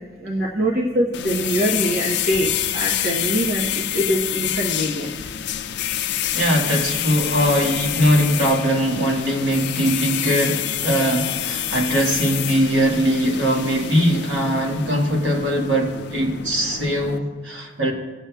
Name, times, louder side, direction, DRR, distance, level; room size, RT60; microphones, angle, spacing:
voice 1, 0.2-5.4, equal, 55° right, 1.0 m, -23 dB
sound 1, 1.1-17.2, left 11 dB, 65° left, 0.5 m, -27 dB
voice 2, 6.3-17.9, equal, 75° right, 1.6 m, -21 dB
17.5 x 7.5 x 2.3 m
head